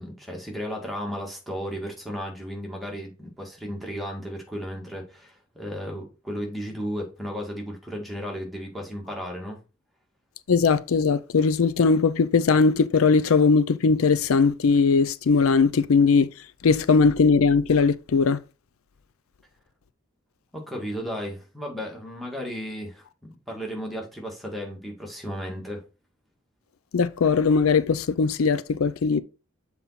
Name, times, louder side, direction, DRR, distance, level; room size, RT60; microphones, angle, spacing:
voice 1, 0.0-9.6 20.5-25.8, equal, ahead, 1.8 m, -34 dB
voice 2, 10.5-16.3 16.6-18.4 26.9-29.2, left 5 dB, 90° left, 0.5 m, -20 dB
7.3 x 4.2 x 4.1 m
head